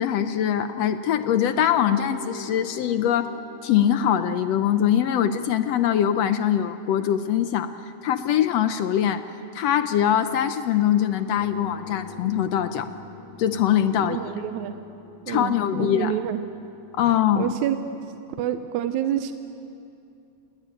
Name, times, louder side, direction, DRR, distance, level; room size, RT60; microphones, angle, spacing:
voice 1, 0.0-3.3 3.6-7.7 8.0-9.2 9.5-12.9 13.4-14.2 15.3-16.1 16.9-17.5, left 10 dB, 70° left, 10 dB, 1.7 m, -22 dB
sound 1, 1.3-9.4 10.8-17.5, left 5 dB, 85° left, 2.9 m, -45 dB
voice 2, 14.0-14.8 15.3-16.6 17.4-17.8 18.4-19.3, right 11 dB, 85° right, 9 dB, 2.2 m, -28 dB
29.5 x 19.5 x 9.1 m, 2.7 s
omnidirectional pair, 3.3 m